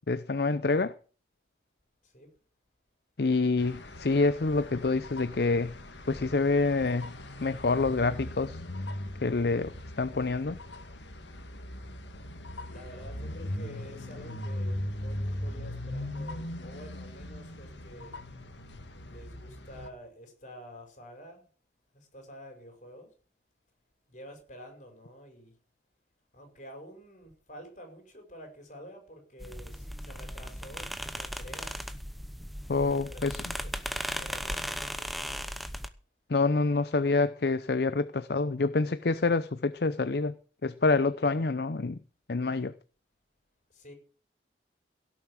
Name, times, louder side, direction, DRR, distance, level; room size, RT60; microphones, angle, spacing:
voice 1, 0.1-0.9 3.2-5.7 6.1-7.1 7.4-8.6 9.2-9.7 10.0-10.6 32.7-33.4 36.3-40.3 40.6-42.0 42.3-42.7, left 3 dB, 60° left, 0.6 m, -27 dB
sound 1, 3.6-19.9, left 1 dB, 80° left, 2.1 m, -39 dB
voice 2, 12.5-18.2 19.0-21.5 21.9-23.1 24.1-25.5 26.3-31.8 33.0-33.2 33.6-33.7 34.1-35.6 43.7-43.9, equal, 45° left, 5.6 m, -49 dB
sound 2, 29.4-35.9, equal, ahead, 0.8 m, -37 dB
17.0 x 7.2 x 7.4 m
head